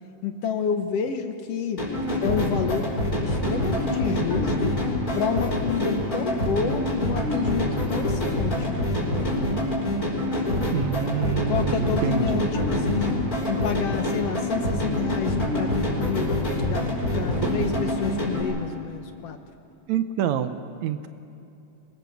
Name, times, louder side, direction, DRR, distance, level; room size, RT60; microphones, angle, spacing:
voice 1, 0.2-1.8 2.2-2.9 3.2-4.8 5.1-9.0 11.5-13.1 13.5-16.9 17.1-19.4, left 7 dB, 65° left, 7 dB, 1.9 m, -29 dB
sound 1, 1.8-18.4, left 1 dB, 30° left, 6.1 m, -26 dB
voice 2, 10.7-12.4 17.4-17.5 19.9-21.1, right 10 dB, 75° right, 9 dB, 2.0 m, -27 dB
25.5 x 21.5 x 7.0 m, 2.7 s
omnidirectional pair, 3.4 m